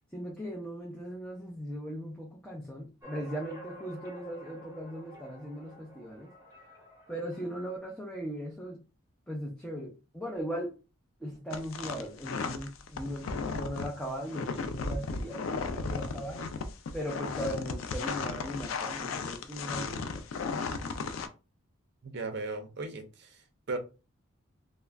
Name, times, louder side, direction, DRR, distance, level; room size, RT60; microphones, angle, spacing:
voice 1, 0.1-6.3 7.1-8.8 9.3-10.7 11.2-16.4 16.9-20.2, equal, 5° left, -2 dB, 0.4 m, -38 dB
A Summer Breeze, 3.0-7.8, right 1 dB, 15° right, 0.8 m, -51 dB
sound 1, 11.5-21.3, left 4 dB, 75° left, 0.4 m, -35 dB
voice 2, 22.0-23.8, right 3 dB, 50° right, 5 dB, 0.5 m, -37 dB
2.3 x 2.0 x 3.3 m, 0.31 s
head